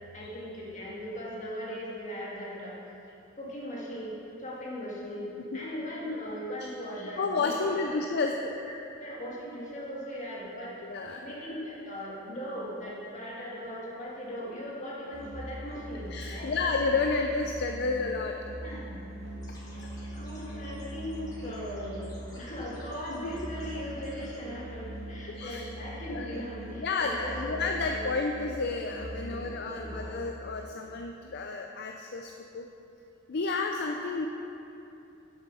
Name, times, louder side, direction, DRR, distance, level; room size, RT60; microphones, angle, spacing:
voice 1, 0.0-2.8 3.4-8.0 9.0-10.8 11.2-16.6 18.6-19.0 20.1-27.5 27.9-28.1 29.2-30.0, equal, 35° left, -6 dB, 2.0 m, -39 dB
voice 2, 7.2-8.5 8.8-8.9 10.8-11.2 16.1-18.4 19.8-19.9 23.1-23.3 25.3-25.7 26.1-26.4 26.8-32.6 33.3-34.3, left 3 dB, 55° left, 3 dB, 0.5 m, -31 dB
Musical instrument, 15.1-30.4, equal, 80° right, 2.0 m, -42 dB
sound 1, 19.4-24.4, left 1 dB, 20° left, 1.7 m, -51 dB
8.1 x 7.1 x 5.5 m, 2.8 s
head